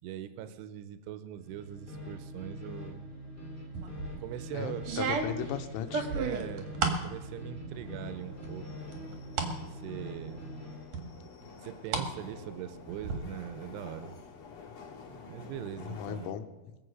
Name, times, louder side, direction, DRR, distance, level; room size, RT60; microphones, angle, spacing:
voice 1, 0.0-3.0 4.2-4.9 6.1-6.8 7.0-8.7 9.7-10.4 11.6-14.1 15.3-16.4, right 11 dB, 80° right, 11 dB, 2.6 m, -41 dB
sound 1, 1.4-10.9, equal, 10° left, 0.9 m, -44 dB
sound 2, 3.7-4.2 4.8-7.1 7.5-8.1 8.4-9.5 10.0-10.1 10.9-12.1 12.4-13.2, right 5 dB, 60° right, 1.8 m, -33 dB
voice 2, 4.5-6.0 15.8-16.8, left 9 dB, 90° left, 8 dB, 3.3 m, -37 dB
sound 3, 7.7-16.3, left 5 dB, 55° left, 2.6 m, -50 dB
22.5 x 8.0 x 5.4 m, 1.1 s
omnidirectional pair, 5.6 m